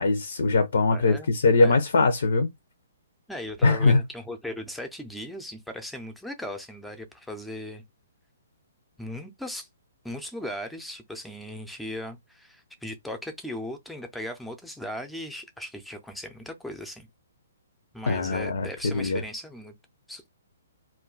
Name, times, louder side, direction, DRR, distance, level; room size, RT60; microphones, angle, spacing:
voice 1, 0.0-2.5 3.6-4.0 18.1-19.2, left 3 dB, 75° left, 0.5 m, -22 dB
voice 2, 0.9-1.7 3.3-7.8 9.0-9.7 10.0-17.1 17.9-19.7 20.1-20.2, left 1 dB, ahead, 0.5 m, -38 dB
2.2 x 2.1 x 3.8 m
hypercardioid pair, 145°, 0 cm